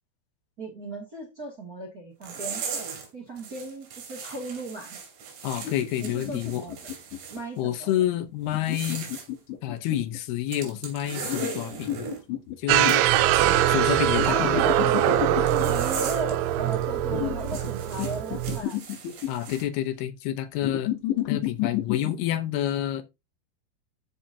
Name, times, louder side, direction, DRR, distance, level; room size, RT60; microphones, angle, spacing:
voice 1, 0.6-2.7 3.1-5.0 6.0-6.9 7.3-8.0 14.2-18.8, right 2 dB, 30° right, 1.9 m, -36 dB
sound 1, 2.2-3.1 3.4-7.4 8.5-9.3 10.5-12.2 12.8-13.0 15.5-16.3 16.7-16.8 17.4-19.6, right 5 dB, 65° right, 4.9 m, -38 dB
voice 2, 5.4-6.6 7.6-9.1 9.6-12.1 12.6-13.1 13.7-14.6 19.3-20.9 21.3-23.0, left 12 dB, 70° left, 2.8 m, -28 dB
sound 2, 5.6-7.4 8.5-10.2 11.2-13.1 14.2-15.7 17.1-17.7 18.0-19.5 20.6-22.2, left 12 dB, 90° left, 3.8 m, -31 dB
sound 3, 12.7-18.6, right 12 dB, 90° right, 3.1 m, -23 dB
14.0 x 5.9 x 2.8 m
omnidirectional pair, 5.2 m